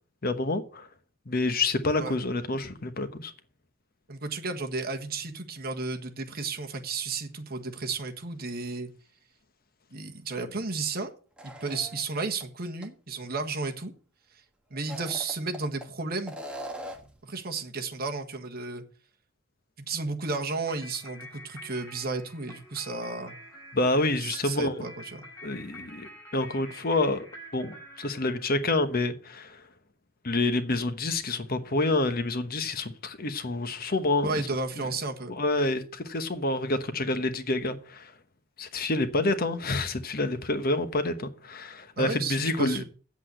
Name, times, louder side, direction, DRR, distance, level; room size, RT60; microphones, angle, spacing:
voice 1, 0.2-0.9 1.3-3.3 23.7-24.8 25.4-27.3 27.5-29.6 30.2-34.3 35.3-38.1 38.6-42.8, left 2 dB, 45° left, 1.0 m, -28 dB
voice 2, 4.1-8.9 9.9-11.1 11.4-13.9 14.7-16.3 17.2-18.8 19.8-23.4 24.2-25.3 34.2-35.4 42.0-42.8, right 3 dB, 45° right, 1.5 m, -33 dB
sound 1, 11.4-12.4 12.8-12.9 14.7-15.9 16.3-17.2, equal, 5° right, 1.4 m, -40 dB
sound 2, 20.7-29.0, equal, 15° left, 5.0 m, -48 dB
8.3 x 8.0 x 7.5 m
head